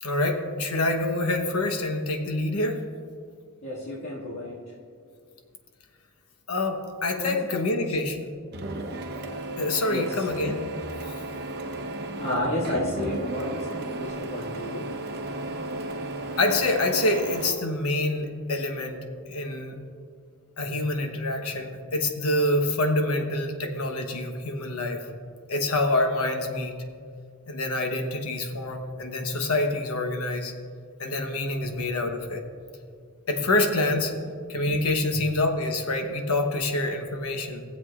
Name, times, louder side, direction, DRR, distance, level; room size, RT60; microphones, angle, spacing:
voice 1, 0.0-2.8 6.5-8.3 9.6-10.6 16.4-19.8 20.6-25.0 25.5-26.8 27.5-30.5 31.0-32.5 33.3-34.1 34.5-37.6, left 2 dB, 80° left, 4 dB, 1.0 m, -26 dB
voice 2, 3.6-4.6 7.2-7.9 9.9-10.3 12.2-14.9 35.1-35.2, left 1 dB, 55° left, -8 dB, 2.0 m, -31 dB
Printer, 8.5-17.5, right 2 dB, 50° right, 0.8 m, -34 dB
20.0 x 7.5 x 2.4 m, 2.2 s
head